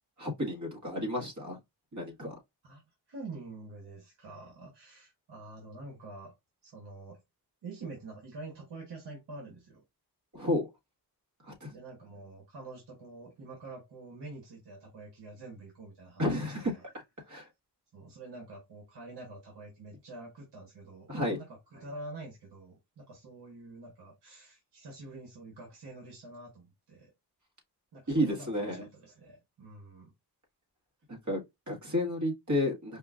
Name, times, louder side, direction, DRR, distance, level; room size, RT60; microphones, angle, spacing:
voice 1, 0.2-1.6 1.9-2.3 10.3-10.7 11.4-11.7 16.2-16.7 17.3-17.5 21.1-21.4 28.1-28.9 31.1-33.0, left 1 dB, 45° right, 1.7 m, -31 dB
voice 2, 3.1-6.3 6.6-7.2 7.6-9.8 11.7-16.8 17.9-27.1 27.9-30.1, right 2 dB, 80° right, 1.3 m, -47 dB
5.0 x 2.5 x 2.5 m
cardioid pair, 55°, 41 cm